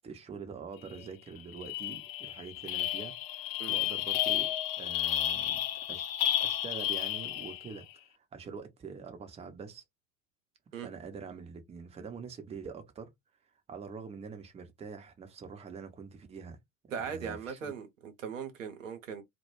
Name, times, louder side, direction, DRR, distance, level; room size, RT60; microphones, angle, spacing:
voice 1, 0.0-4.5 4.7-6.1 6.4-9.8 10.8-13.1 13.7-16.6 16.9-17.7, right 5 dB, 15° right, 0.6 m, -45 dB
sound 1, 0.9-1.1 1.4-7.8, left 12 dB, 50° left, 0.4 m, -32 dB
voice 2, 16.9-19.2, right 6 dB, 80° right, 0.6 m, -39 dB
2.2 x 2.1 x 3.0 m
figure-of-eight pair, 70°, 38 cm